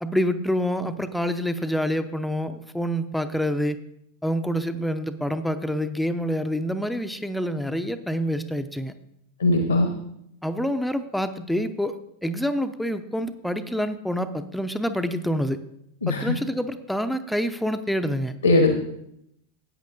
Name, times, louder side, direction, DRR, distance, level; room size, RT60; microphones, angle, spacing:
voice 1, 0.0-3.8 4.2-8.9 10.4-15.6 16.1-18.3, equal, ahead, 9 dB, 0.5 m, -27 dB
voice 2, 9.4-9.9 16.0-16.3 18.4-18.7, left 2 dB, 75° left, 5 dB, 1.1 m, -19 dB
14.0 x 8.9 x 2.6 m, 0.77 s
figure-of-eight pair, 90°, 0 cm